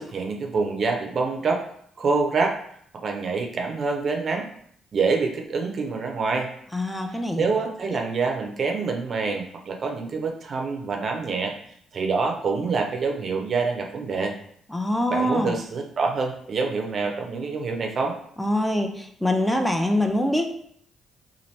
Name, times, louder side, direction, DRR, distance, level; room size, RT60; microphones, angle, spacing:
voice 1, 0.0-1.6 2.0-2.6 3.0-4.5 4.9-6.5 7.4-11.5 11.9-14.3 15.1-18.2, right 4 dB, 55° right, 2 dB, 0.5 m, -26 dB
voice 2, 6.7-7.5 7.9-8.0 14.7-15.6 18.4-20.5, left 1 dB, 5° left, 4 dB, 0.5 m, -24 dB
2.8 x 2.5 x 3.2 m, 0.65 s
hypercardioid pair, 50°, 0 cm